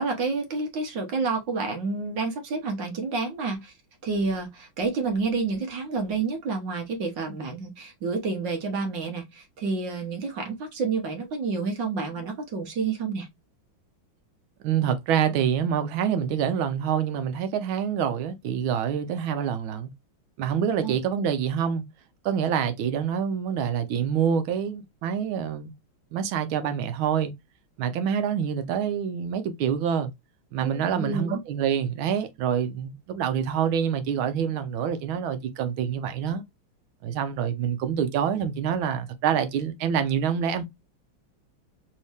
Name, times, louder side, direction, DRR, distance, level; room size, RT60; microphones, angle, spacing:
voice 1, 0.0-3.7 4.0-13.3 20.8-20.9 30.6-31.4, right 4 dB, 65° right, 1.8 m, -29 dB
voice 2, 14.6-19.9 20.4-21.8 22.2-25.7 26.1-27.3 27.8-30.1 30.5-36.4 37.0-40.6, right 8 dB, 80° right, 1.5 m, -26 dB
4.2 x 2.8 x 3.3 m
omnidirectional pair, 2.3 m